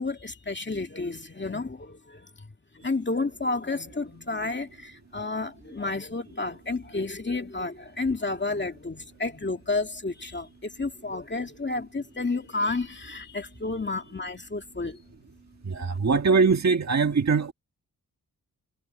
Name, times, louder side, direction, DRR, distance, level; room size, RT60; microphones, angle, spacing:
voice 1, 0.0-2.5 2.7-15.0 15.8-16.0, left 3 dB, 30° left, 2.3 m, -31 dB
voice 2, 15.6-17.5, right 5 dB, 50° right, 1.7 m, -22 dB
wide cardioid pair, 80°, 35 cm